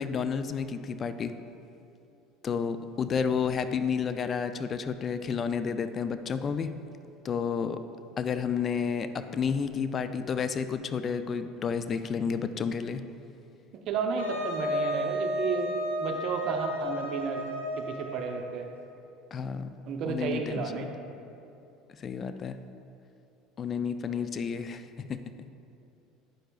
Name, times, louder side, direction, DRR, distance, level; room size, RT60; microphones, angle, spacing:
voice 1, 0.0-1.3 2.4-6.7 7.2-7.8 8.2-13.0 19.3-19.7 20.0-20.9 21.9-22.6 23.6-25.2, left 6 dB, 40° left, 10 dB, 0.3 m, -31 dB
voice 2, 13.9-15.7 16.0-17.4 17.9-18.7 19.9-20.9, right 5 dB, 55° right, 3 dB, 0.7 m, -32 dB
Wind instrument woodwind instrument, 14.2-18.5, equal, 90° left, 0.9 m, -32 dB
9.0 x 6.6 x 2.3 m, 2.7 s
hypercardioid pair, 70°, 0 cm